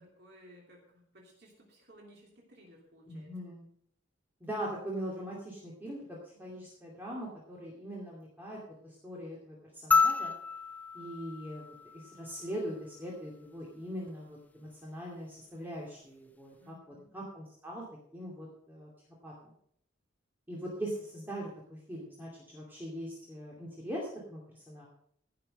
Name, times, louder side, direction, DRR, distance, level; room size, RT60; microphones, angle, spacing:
voice 1, 0.0-3.3 6.3-6.6 16.6-17.1, equal, 55° right, -2 dB, 2.9 m, -58 dB
voice 2, 3.1-3.7 4.4-10.3 10.9-17.8 18.1-18.9 19.2-19.5 20.5-24.9, equal, 10° right, -4 dB, 2.5 m, -41 dB
sound 1, 9.9-12.5 14.1-14.2, left 4 dB, 10° left, 0.6 m, -30 dB
15.5 x 6.8 x 6.5 m, 0.68 s
head